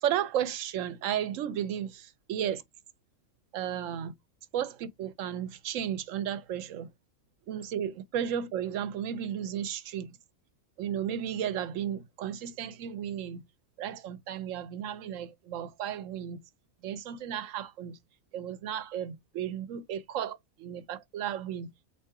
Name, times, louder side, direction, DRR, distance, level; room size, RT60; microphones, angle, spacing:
voice 1, 0.0-2.6 3.5-4.1 4.5-6.9 7.5-10.1 10.8-13.4 13.8-16.4 16.8-18.0 18.3-21.7, right 9 dB, 70° right, 0.9 m, -34 dB
3.6 x 2.7 x 4.6 m
omnidirectional pair, 1.5 m